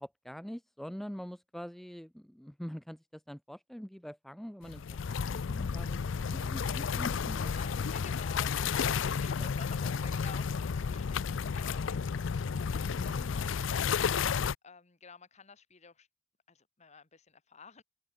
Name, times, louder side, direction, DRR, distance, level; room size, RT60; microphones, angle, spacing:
voice 1, 0.0-7.6 13.0-13.3, equal, ahead, 0.4 m, -44 dB
sound 1, 4.6-14.5, left 6 dB, 70° left, 0.5 m, -32 dB
voice 2, 7.5-16.1 16.5-17.8, left 5 dB, 35° left, 1.4 m, -52 dB
open air
head